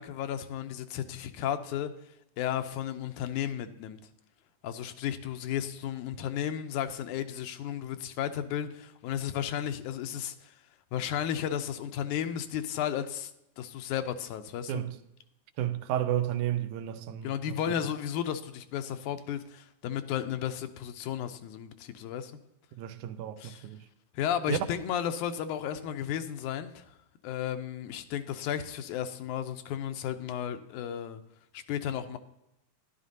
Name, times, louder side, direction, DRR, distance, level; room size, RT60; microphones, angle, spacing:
voice 1, 0.0-1.9 2.4-4.0 4.6-10.5 10.9-13.3 13.6-14.8 17.2-22.3 23.4-23.7 24.1-26.9 27.2-31.2 31.5-32.2, left 9 dB, 85° left, 2.1 m, -33 dB
voice 2, 15.6-17.6 22.8-23.8 24.5-24.7, right 11 dB, 85° right, 2.1 m, -32 dB
12.5 x 11.0 x 2.7 m
omnidirectional pair, 3.5 m